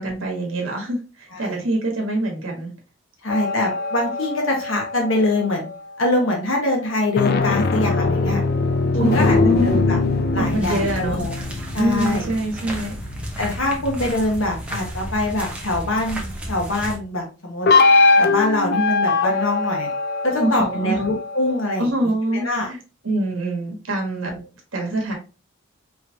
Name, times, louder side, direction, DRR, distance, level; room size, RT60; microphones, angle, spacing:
voice 1, 0.0-2.7 8.9-9.8 10.4-11.2 11.8-12.9 20.4-21.0 21.8-22.8 23.0-24.3 24.7-25.1, right 1 dB, 70° right, 1 dB, 1.4 m, -24 dB
voice 2, 1.3-1.6 3.2-5.7 6.0-8.4 8.9-10.0 10.3-11.4 11.7-12.3 13.4-16.2 16.5-17.7 18.2-19.9 20.2-22.1 22.4-22.7 24.2-24.4, left 1 dB, 70° left, 0 dB, 1.5 m, -23 dB
sound 1, 3.3-5.9 7.0-13.8 17.7-21.9, left 3 dB, 50° left, 0.5 m, -21 dB
sound 2, 10.4-17.0, right 1 dB, 5° right, 0.9 m, -33 dB
4.9 x 3.1 x 2.8 m, 0.32 s
head